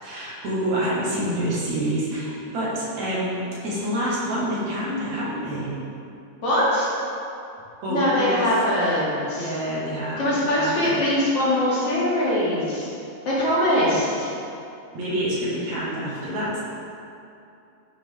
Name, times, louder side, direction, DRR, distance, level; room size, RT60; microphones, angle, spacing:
voice 1, 0.0-5.7 7.8-8.4 9.4-11.0 14.9-16.6, right 1 dB, 70° right, -7 dB, 3.2 m, -27 dB
voice 2, 6.4-6.9 7.9-9.5 10.2-12.9 13.2-14.3, left 1 dB, 55° left, -9 dB, 3.2 m, -22 dB
13.0 x 6.0 x 3.7 m, 2.6 s
omnidirectional pair, 3.3 m